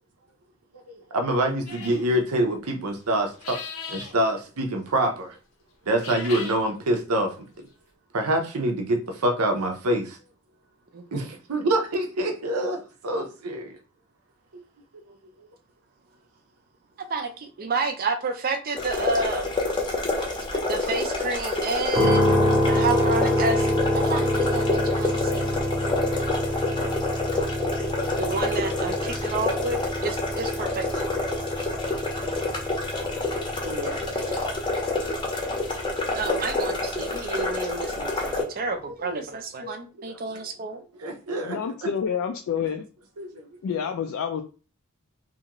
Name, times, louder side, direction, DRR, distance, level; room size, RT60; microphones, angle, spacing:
voice 1, 0.9-3.6 3.9-5.4 5.9-7.4 8.1-10.2 11.1-13.7 14.5-14.6 15.1-15.2 31.9-32.5 32.9-34.6 35.7-35.9 38.2-38.3 39.6-39.7 41.0-41.9 43.2-43.5, right 1 dB, 85° right, 4 dB, 0.7 m, -27 dB
sound 1, 1.7-2.1 3.3-4.1 5.9-6.6, left 5 dB, 80° left, 0.7 m, -37 dB
voice 2, 17.1-19.5 20.5-22.3 22.7-25.5 26.8-27.0 27.3-27.6 28.2-31.0 33.6-34.3 36.1-40.8, right 3 dB, 40° right, 7 dB, 0.4 m, -30 dB
sound 2, 18.7-38.4, left 2 dB, 20° left, 0.6 m, -28 dB
sound 3, 21.9-36.0, left 1 dB, 15° right, 0.7 m, -27 dB
voice 3, 41.4-42.9 43.6-44.4, left 7 dB, 65° left, 4 dB, 0.3 m, -28 dB
2.7 x 2.4 x 2.9 m, 0.35 s
head